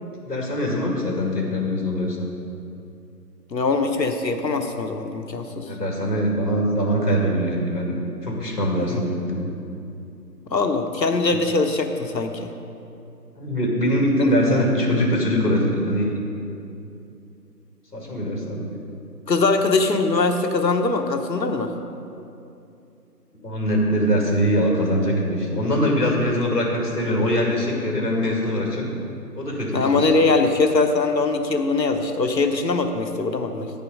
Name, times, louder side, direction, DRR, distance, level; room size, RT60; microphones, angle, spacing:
voice 1, 0.2-2.3 5.6-9.5 13.4-16.1 17.9-18.7 23.4-28.9 29.3-30.1, equal, 65° left, -1 dB, 2.3 m, -22 dB
voice 2, 3.5-5.6 8.9-9.0 10.5-12.5 14.2-14.3 19.3-21.7 29.7-33.7, left 3 dB, 85° left, 6 dB, 1.1 m, -22 dB
10.0 x 6.8 x 5.1 m, 2.7 s
figure-of-eight pair, 180°, 49 cm